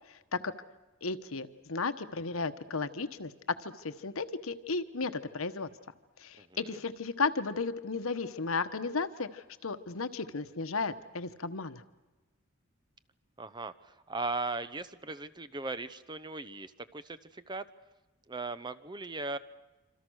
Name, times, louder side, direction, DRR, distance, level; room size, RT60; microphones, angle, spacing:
voice 1, 1.0-3.3 3.6-5.7 6.2-11.8, left 4 dB, 80° left, 11 dB, 1.2 m, -34 dB
voice 2, 6.4-6.8 13.4-17.7 18.3-19.4, right 3 dB, 20° right, 13 dB, 0.8 m, -38 dB
26.5 x 26.5 x 6.4 m, 1.1 s
head